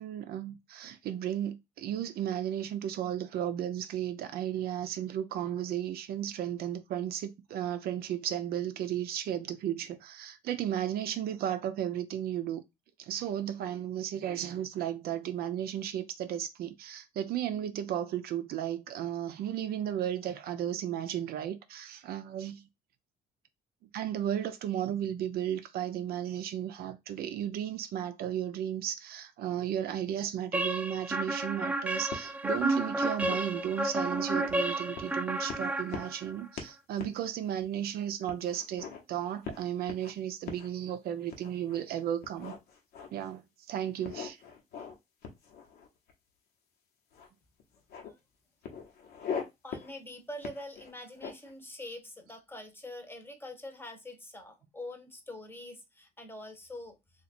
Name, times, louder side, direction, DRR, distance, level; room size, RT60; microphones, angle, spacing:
voice 1, 0.0-12.6 13.0-22.6 23.8-42.6 43.1-43.4 43.7-44.4, right 10 dB, 65° right, 0.5 m, -34 dB
sound 1, 30.5-36.4, right 2 dB, 10° right, 0.3 m, -31 dB
sound 2, 32.1-32.8 33.2-34.5 35.0-35.2 35.5-36.3 36.6-36.7 37.0-37.2 37.6-37.7 38.3-39.0 39.4-40.1 40.5-40.7 41.3-41.8 42.2-43.3 44.0-45.0 45.2-46.1 47.1-47.3 47.6-48.1 48.6-49.4 49.7-49.9 50.4-51.5, left 6 dB, 70° left, 1.0 m, -41 dB
voice 2, 47.7-48.2 49.6-57.0, left 1 dB, 15° left, 0.9 m, -44 dB
2.8 x 2.4 x 4.2 m
cardioid pair, 110°, 17 cm